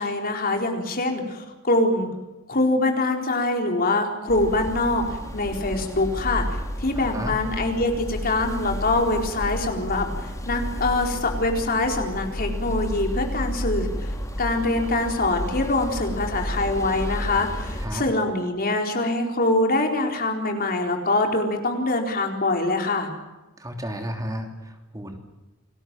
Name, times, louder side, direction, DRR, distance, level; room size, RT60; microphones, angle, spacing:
voice 1, 0.0-2.1 2.5-14.1 14.4-23.1, left 2 dB, 45° left, 2 dB, 4.3 m, -24 dB
sound 1, 4.3-17.9, equal, 15° left, 4.0 m, -31 dB
voice 2, 6.9-7.4 17.8-18.0 23.6-25.2, equal, 15° right, 3 dB, 3.1 m, -33 dB
29.0 x 20.5 x 7.6 m, 1.1 s
head